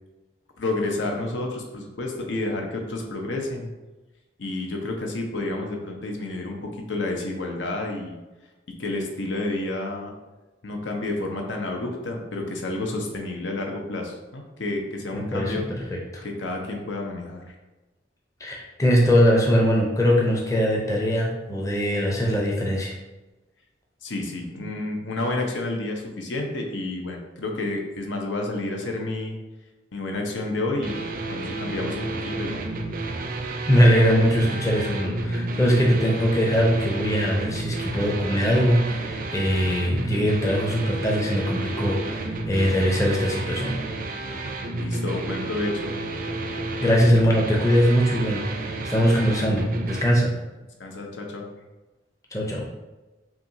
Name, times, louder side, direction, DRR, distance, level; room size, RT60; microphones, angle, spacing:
voice 1, 0.6-3.7 4.4-8.2 8.8-10.1 10.6-15.6 16.2-17.5 24.0-29.4 29.9-31.0 31.3-32.6 44.8-46.0 50.8-51.5, left 2 dB, 85° left, 1 dB, 0.7 m, -30 dB
voice 2, 15.1-16.2 18.4-22.9 33.6-43.8 46.8-50.4 52.3-52.7, equal, 15° left, -2 dB, 0.6 m, -21 dB
sound 1, 30.8-50.0, right 2 dB, 50° right, 0.4 m, -31 dB
5.7 x 2.4 x 2.7 m, 1.1 s
head